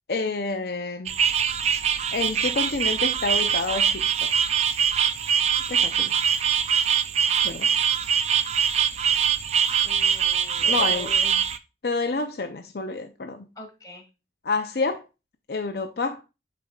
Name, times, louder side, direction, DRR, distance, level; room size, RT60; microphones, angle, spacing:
voice 1, 0.1-1.2 2.1-4.3 5.7-6.1 7.4-7.7 10.6-11.2 11.8-13.5 14.4-15.1 15.5-16.2, left 3 dB, 60° left, 0.5 m, -28 dB
sound 1, 1.1-11.6, right 8 dB, 35° right, 0.4 m, -23 dB
voice 2, 9.8-11.4 13.6-14.0, left 2 dB, 20° left, 1.8 m, -42 dB
8.4 x 5.1 x 2.3 m
head